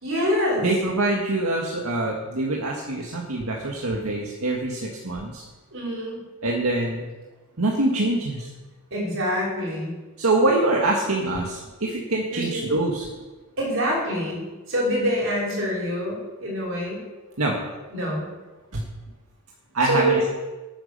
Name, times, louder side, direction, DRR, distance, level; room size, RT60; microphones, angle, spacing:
voice 1, 0.0-0.7 5.7-6.2 8.9-9.9 12.3-12.6 13.6-17.0 17.9-18.3 19.8-20.2, equal, 65° right, -3 dB, 5.3 m, -25 dB
voice 2, 0.6-5.4 6.4-7.1 7.6-8.5 10.2-13.1 17.4-17.6 18.7-18.8 19.7-20.3, right 2 dB, 85° right, -1 dB, 1.8 m, -24 dB
11.0 x 9.3 x 6.7 m, 1.2 s
head